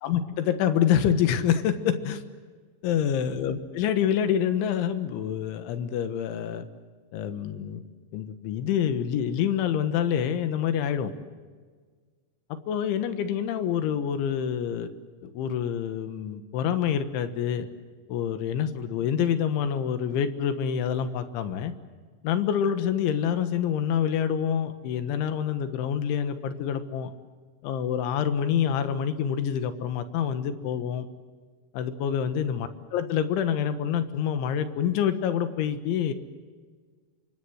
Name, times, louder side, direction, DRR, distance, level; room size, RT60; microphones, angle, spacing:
voice 1, 0.0-2.2 2.8-6.7 7.1-7.8 8.1-11.1 12.5-15.0 15.2-17.7 18.1-21.7 22.2-27.1 27.6-31.1 31.7-36.1, left 8 dB, 80° left, 10 dB, 3.8 m, -27 dB
27.0 x 24.0 x 8.0 m, 1.5 s
omnidirectional pair, 5.4 m